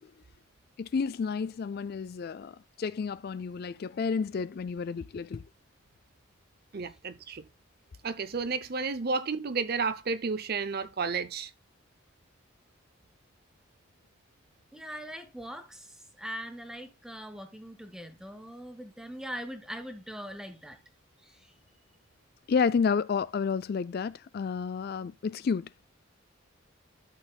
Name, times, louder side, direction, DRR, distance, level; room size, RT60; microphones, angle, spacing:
voice 1, 0.8-5.4 22.5-25.7, left 5 dB, 50° left, 0.3 m, -30 dB
voice 2, 6.7-7.4 8.0-11.5, right 4 dB, 50° right, 0.6 m, -31 dB
voice 3, 14.7-20.8 21.2-21.4, equal, 5° right, 1.4 m, -41 dB
12.5 x 6.4 x 2.3 m
head